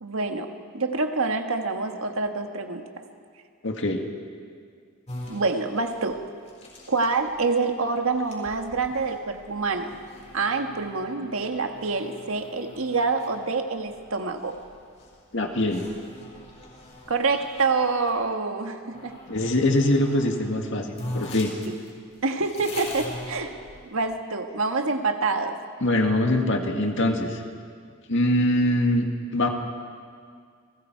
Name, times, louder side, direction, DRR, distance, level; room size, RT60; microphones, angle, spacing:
voice 1, 0.0-2.8 5.3-6.2 6.9-9.9 10.3-14.6 17.1-19.2 22.2-23.5 23.9-25.6, right 3 dB, 75° right, 5 dB, 1.6 m, -26 dB
voice 2, 3.6-4.0 15.3-15.8 19.3-21.5 25.8-27.4 28.1-29.1 29.3-29.5, left 1 dB, 60° left, 3 dB, 2.0 m, -23 dB
sound 1, 5.1-18.2 18.9-20.3 20.6-20.7 20.9-24.1, left 1 dB, 35° left, 5.7 m, -42 dB
29.0 x 20.0 x 4.7 m, 2.2 s
head